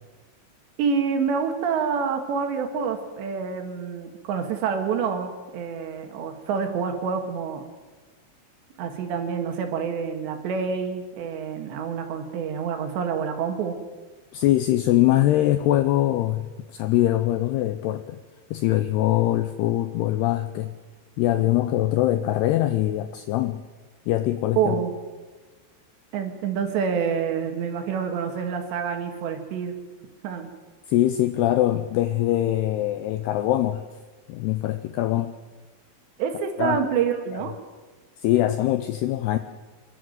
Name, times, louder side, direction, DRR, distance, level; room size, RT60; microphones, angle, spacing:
voice 1, 0.8-7.6 8.8-13.8 24.6-24.9 26.1-29.8 30.2-30.5 36.2-37.5, right 6 dB, 70° right, 5 dB, 3.9 m, -27 dB
voice 2, 14.3-16.5 16.7-18.2 18.5-20.7 21.2-23.6 24.1-24.8 30.9-33.8 34.3-35.3 36.6-36.8 38.2-39.4, left 14 dB, 80° left, 10 dB, 2.3 m, -22 dB
27.5 x 12.5 x 7.9 m, 1.3 s
omnidirectional pair, 5.5 m